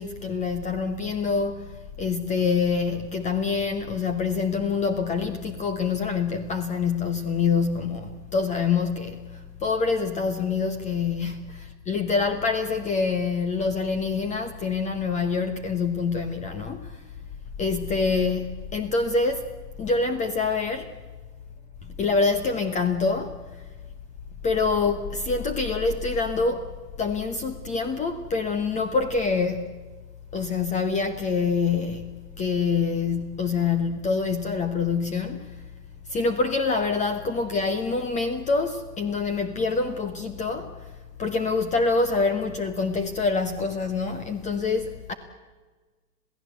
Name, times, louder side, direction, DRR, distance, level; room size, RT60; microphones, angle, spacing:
voice 1, 0.0-17.0 17.6-19.5 19.8-20.9 21.8-23.6 24.4-26.7 27.0-29.7 30.3-35.6 36.1-40.9 41.2-45.1, left 4 dB, 15° left, 10 dB, 1.1 m, -26 dB
27.5 x 16.5 x 8.1 m, 1.3 s
hypercardioid pair, 125°, 47 cm